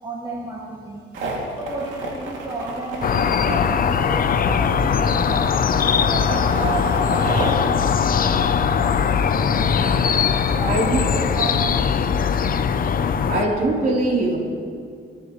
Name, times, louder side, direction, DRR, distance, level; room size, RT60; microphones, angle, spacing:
voice 1, 0.0-1.0 1.5-5.5 5.9-7.6 8.8-10.0 10.5-12.2, right 2 dB, 20° right, -5 dB, 2.1 m, -32 dB
sound 1, 1.1-7.5, right 3 dB, 80° right, 2.7 m, -32 dB
sound 2, 3.0-13.4, left 6 dB, 45° left, 0.7 m, -20 dB
voice 2, 10.7-11.1 13.3-14.4, right 2 dB, 45° right, -3 dB, 3.7 m, -21 dB
27.5 x 10.0 x 3.2 m, 2.2 s
cardioid pair, 90°, 20 cm